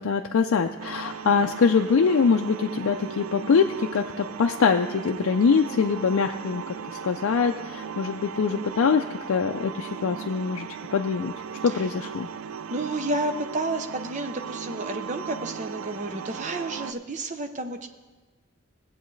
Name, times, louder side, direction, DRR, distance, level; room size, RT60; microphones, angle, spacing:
voice 1, 0.0-6.6 6.9-11.3 11.6-12.3, left 5 dB, 80° left, 3 dB, 0.4 m, -23 dB
sound 1, 0.8-16.9, right 7 dB, 80° right, 0.4 m, -37 dB
voice 2, 12.7-17.9, right 2 dB, 35° right, 7 dB, 0.6 m, -31 dB
16.5 x 8.0 x 3.2 m, 1.2 s
head